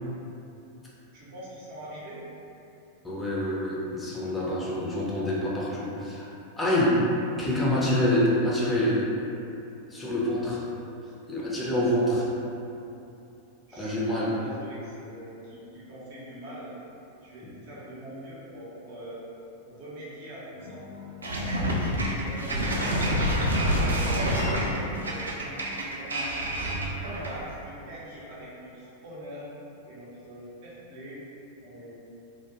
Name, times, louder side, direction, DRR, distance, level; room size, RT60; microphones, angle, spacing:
voice 1, 1.1-2.2 13.7-16.7 17.2-19.2 19.6-20.8 21.3-23.0 23.9-25.6 26.0-26.6 27.0-29.5 29.9-31.2 31.6-31.9, equal, 50° right, -7 dB, 0.7 m, -43 dB
voice 2, 3.0-6.2 6.6-7.1 7.4-9.0 9.9-10.6 11.3-12.3 13.7-14.3, left 1 dB, 10° left, -7 dB, 0.5 m, -26 dB
sound 1, 20.5-25.9, left 4 dB, 70° left, 0.5 m, -41 dB
sound 2, 21.2-27.5, equal, 75° right, 0.3 m, -27 dB
2.2 x 2.1 x 2.9 m, 2.8 s
figure-of-eight pair, 90°, 0 cm